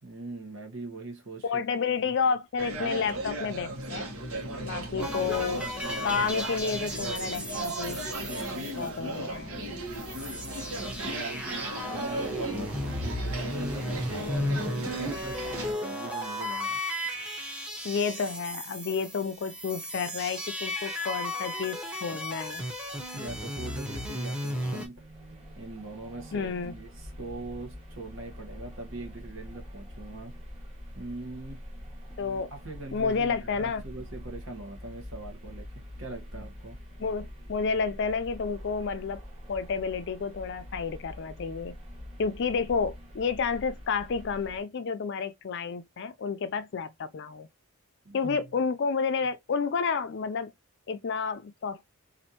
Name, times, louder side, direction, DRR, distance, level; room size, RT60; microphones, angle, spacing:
voice 1, 0.0-1.6 4.4-5.0 10.6-16.8 23.1-25.0 25.6-30.4 30.9-31.6 32.1-32.2 32.5-36.8 48.0-48.4, right 2 dB, 60° right, 1.3 m, -42 dB
voice 2, 1.4-4.1 4.6-5.6 6.0-8.0 8.7-9.5 17.8-22.6 26.3-26.7 32.2-32.5 32.9-33.8 37.0-39.2 39.5-41.8 42.2-47.5 48.1-50.5 50.9-51.9, left 5 dB, 55° left, 0.4 m, -30 dB
sound 1, 2.6-15.7, right 1 dB, 80° right, 1.2 m, -36 dB
sound 2, 5.0-9.4 9.7-9.8 9.9-24.9, left 1 dB, 5° right, 0.8 m, -35 dB
sound 3, 24.9-44.6, equal, 30° right, 2.6 m, -45 dB
4.2 x 2.6 x 2.8 m
head